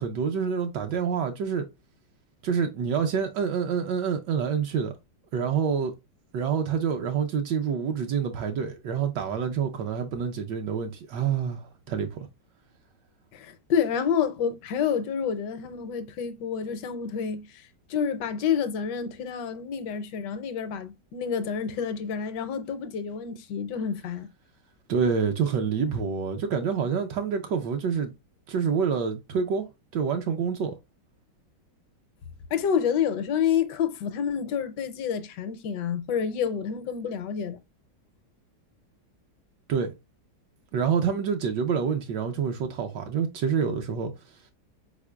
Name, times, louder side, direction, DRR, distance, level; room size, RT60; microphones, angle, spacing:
voice 1, 0.0-1.7 2.4-4.9 5.3-5.9 6.3-12.3 24.9-28.1 28.5-29.7 29.9-30.7 39.7-39.9 40.7-44.1, right 6 dB, 75° right, 1.2 m, -27 dB
voice 2, 13.3-24.3 32.5-37.6, left 7 dB, 75° left, 1.2 m, -28 dB
4.8 x 4.3 x 2.2 m
omnidirectional pair, 2.0 m